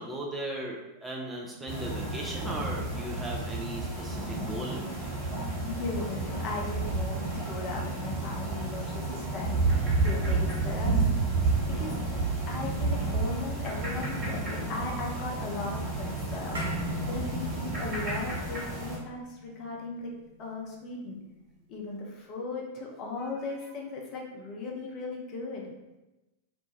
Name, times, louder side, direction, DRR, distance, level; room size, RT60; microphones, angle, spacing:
voice 1, 0.0-5.1, right 1 dB, 10° right, -2 dB, 0.4 m, -37 dB
sound 1, 1.7-19.0, right 3 dB, 35° right, 1.4 m, -31 dB
voice 2, 5.6-9.6 9.9-10.9 11.8-12.0 12.5-20.1 20.4-21.2 21.7-25.7, left 3 dB, 35° left, -1 dB, 0.6 m, -37 dB
sound 2, 16.5-21.2, left 1 dB, 70° right, 0.6 m, -40 dB
2.5 x 2.2 x 3.1 m, 1.0 s
figure-of-eight pair, 90°, 0 cm